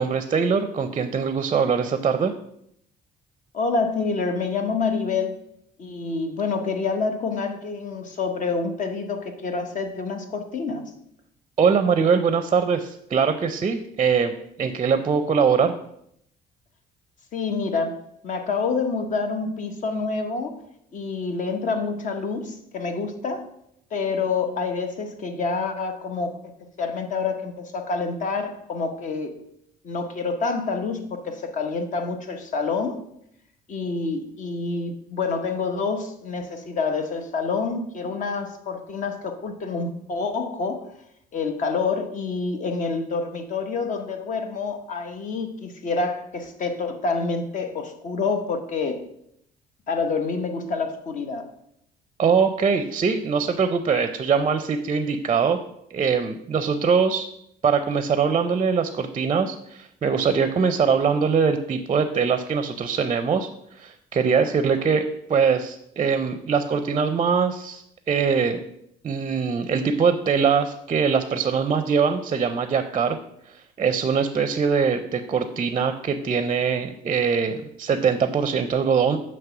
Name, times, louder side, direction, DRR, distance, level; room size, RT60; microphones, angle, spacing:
voice 1, 0.0-2.3 11.6-14.3 14.6-15.7 52.2-55.6 55.9-57.3 57.6-63.5 63.8-68.6 69.0-73.2 73.8-79.2, right 6 dB, 30° right, 9 dB, 0.5 m, -22 dB
voice 2, 3.5-5.4 5.8-10.9 17.3-18.0 18.2-20.6 20.9-23.5 23.9-26.4 26.8-29.3 29.8-33.0 33.7-40.9 41.3-49.0 49.9-51.5, left 4 dB, 50° left, 6 dB, 0.9 m, -27 dB
7.5 x 3.1 x 5.9 m, 0.74 s
cardioid pair, 110°, 17 cm